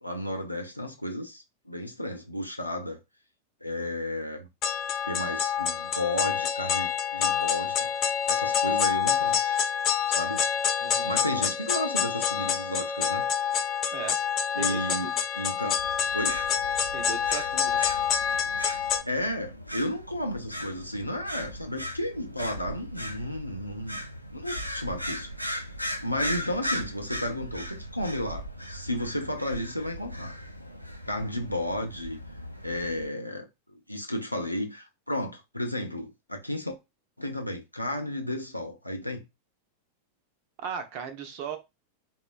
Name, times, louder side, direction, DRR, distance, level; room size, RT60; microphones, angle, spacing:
voice 1, 0.0-3.0 3.6-4.5 5.0-9.6 10.1-10.4 11.0-13.3 14.5-15.1 15.4-15.7 16.1-16.4 19.1-24.0 24.3-25.3 26.0-30.3 31.1-32.2 32.6-36.8 37.2-39.2, left 1 dB, 90° left, 0.5 m, -33 dB
sound 1, 4.6-19.0, left 8 dB, 35° left, 0.4 m, -27 dB
voice 2, 10.8-11.1 13.9-14.2 14.6-15.1 16.9-17.8 40.6-41.6, right 7 dB, 45° right, 0.6 m, -37 dB
sound 2, 15.8-33.1, equal, 90° right, 0.3 m, -38 dB
3.6 x 2.1 x 2.5 m
figure-of-eight pair, 90°, 0 cm